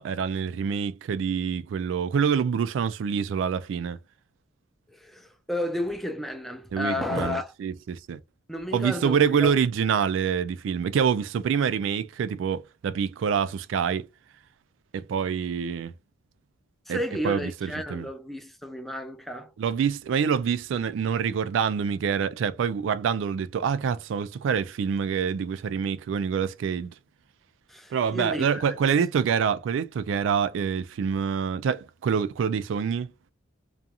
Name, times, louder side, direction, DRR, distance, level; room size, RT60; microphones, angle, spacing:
voice 1, 0.0-4.0 6.7-8.2 8.7-14.1 14.9-15.9 16.9-18.1 19.6-26.9 27.9-33.1, right 7 dB, 75° right, 0.3 m, -26 dB
voice 2, 4.9-7.5 8.5-9.6 16.9-19.5 27.7-29.0, left 1 dB, ahead, 0.4 m, -32 dB
2.4 x 2.4 x 2.7 m
head